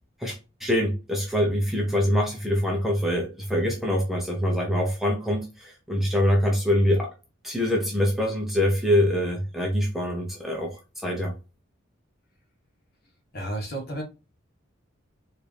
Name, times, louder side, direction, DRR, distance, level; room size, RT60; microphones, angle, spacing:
voice 1, 0.2-7.1 7.4-11.3, equal, ahead, 0.7 m, -24 dB
voice 2, 13.3-14.0, right 1 dB, 50° left, 1.5 m, -31 dB
4.4 x 2.6 x 3.3 m
head